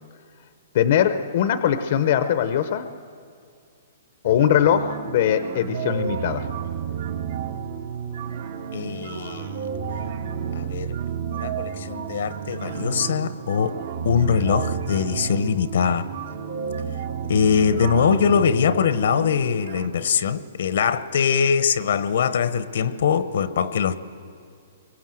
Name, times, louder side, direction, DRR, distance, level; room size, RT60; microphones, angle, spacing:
voice 1, 0.7-2.9 4.2-6.5, left 9 dB, 45° left, 0.8 m, -21 dB
sound 1, 4.2-19.9, right 7 dB, 55° right, 1.6 m, -31 dB
voice 2, 8.7-9.6 10.5-10.9 11.3-16.1 17.3-24.0, left 7 dB, 65° left, 1.0 m, -22 dB
30.0 x 23.5 x 7.8 m
hypercardioid pair, 170°, 0 cm